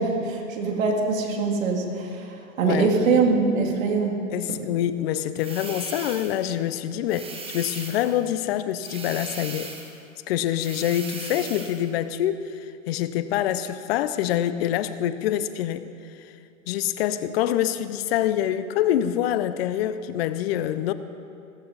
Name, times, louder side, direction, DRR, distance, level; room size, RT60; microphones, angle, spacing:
voice 1, 0.0-4.2 4.5-4.6, right 4 dB, 70° right, 1 dB, 2.7 m, -23 dB
voice 2, 4.3-9.7 10.3-15.9 16.7-20.9, left 11 dB, 50° left, 12 dB, 0.7 m, -26 dB
sound 1, 5.4-6.5 7.1-8.2 8.8-10.0 10.6-11.8, right 4 dB, 15° right, 1.4 m, -38 dB
16.5 x 14.0 x 4.1 m, 2.5 s
hypercardioid pair, 125°, 41 cm